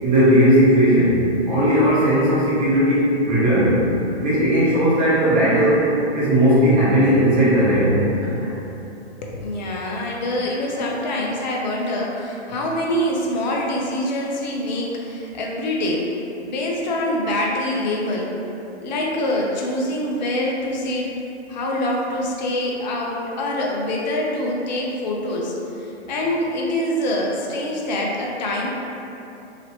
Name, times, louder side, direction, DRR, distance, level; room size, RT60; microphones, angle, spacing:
voice 1, 0.0-1.2 1.5-3.0 3.3-3.7 4.2-5.9 6.1-8.0 8.4-8.5, equal, 25° right, -12 dB, 1.4 m, -16 dB
voice 2, 9.2-16.1 16.4-18.4 18.8-21.1 21.5-28.7, left 1 dB, 40° left, -2 dB, 0.6 m, -25 dB
2.9 x 2.9 x 2.9 m, 2.9 s
hypercardioid pair, 135°, 34 cm